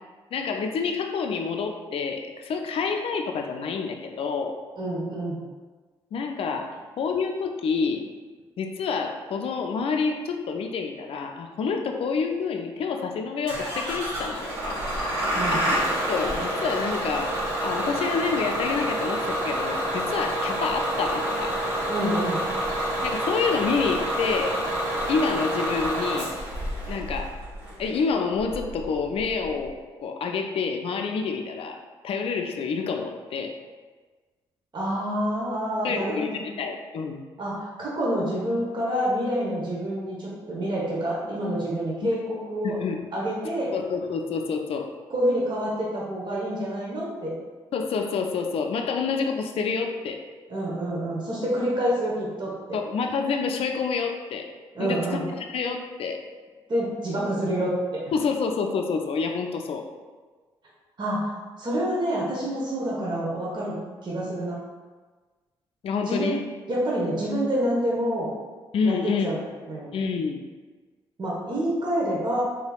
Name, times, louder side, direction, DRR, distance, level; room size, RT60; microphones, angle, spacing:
voice 1, 0.3-4.6 6.1-8.1 8.6-14.8 15.5-15.8 16.1-17.3 17.6-21.6 23.0-24.6 25.1-26.3 26.9-27.4 27.8-33.6 35.8-37.2 42.0-42.1 42.6-43.0 43.7-44.9 47.7-50.2 52.7-54.5 54.8-56.2 58.1-59.9 65.8-66.4 68.7-69.3 69.9-70.4, left 5 dB, 55° left, 4 dB, 0.4 m, -28 dB
voice 2, 4.8-5.4 15.3-15.6 21.9-22.4 34.7-36.4 37.4-42.8 43.1-43.7 45.1-47.3 50.5-52.8 54.8-55.3 56.7-58.0 61.0-61.3 61.6-63.8 64.0-64.6 66.1-66.4 66.7-68.3 68.8-69.9 71.2-72.4, equal, 40° right, -5 dB, 1.0 m, -27 dB
Bus / Engine starting, 13.5-29.7, right 1 dB, 85° right, 1.1 m, -28 dB
3.4 x 3.3 x 2.3 m, 1.4 s
hypercardioid pair, 45°, 12 cm